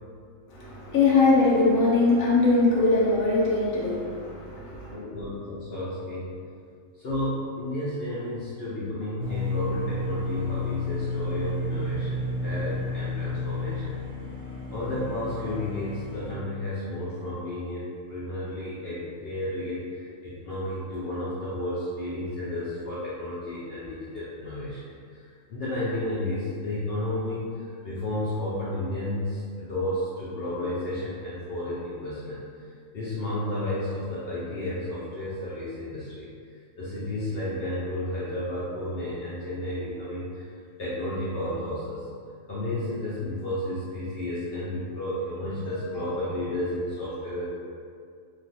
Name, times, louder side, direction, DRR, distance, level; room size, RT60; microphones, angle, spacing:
voice 1, 0.5-4.9, left 3 dB, 85° left, -6 dB, 1.1 m, -21 dB
voice 2, 4.9-6.3 7.0-14.0 14.7-24.9 25.1-25.2 25.5-32.4 32.9-36.3 36.8-40.4 40.8-42.0 42.5-47.5, left 1 dB, 60° left, -9 dB, 0.7 m, -32 dB
sound 1, 9.2-16.3, left 2 dB, 30° right, 0.8 m, -31 dB
3.2 x 2.3 x 2.7 m, 2.2 s
omnidirectional pair, 1.4 m